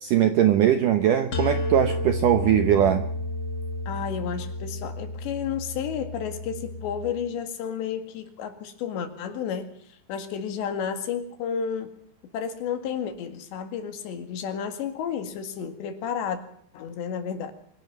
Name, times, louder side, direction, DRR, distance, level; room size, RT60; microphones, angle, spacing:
voice 1, 0.0-3.0, right 10 dB, 75° right, 9 dB, 2.0 m, -20 dB
sound 1, 1.3-7.1, left 2 dB, 40° left, 1.9 m, -31 dB
voice 2, 3.9-11.9 12.3-16.4 16.7-17.5, left 7 dB, 80° left, 8 dB, 4.3 m, -32 dB
24.5 x 11.0 x 9.6 m, 0.64 s
omnidirectional pair, 5.0 m